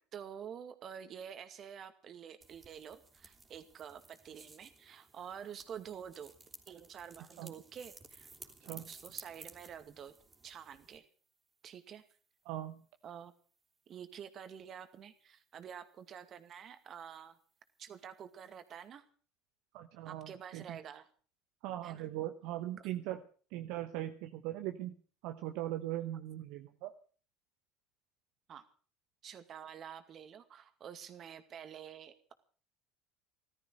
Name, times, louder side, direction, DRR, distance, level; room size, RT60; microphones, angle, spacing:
voice 1, 0.1-6.3 6.7-8.3 8.8-10.1 10.4-11.0 11.6-12.0 13.0-13.3 13.9-17.4 17.8-19.0 20.0-21.1 21.8-22.0 28.5-28.6 29.2-32.3, right 8 dB, 45° right, 9 dB, 2.3 m, -48 dB
sound 1, 2.4-11.0, right 3 dB, 25° right, 3.6 m, -55 dB
voice 2, 12.4-12.8 19.7-20.8 21.6-23.2 23.5-24.9 25.2-26.9, right 14 dB, 70° right, 7 dB, 1.1 m, -40 dB
14.5 x 13.5 x 6.4 m, 0.42 s
hypercardioid pair, 80°, 0 cm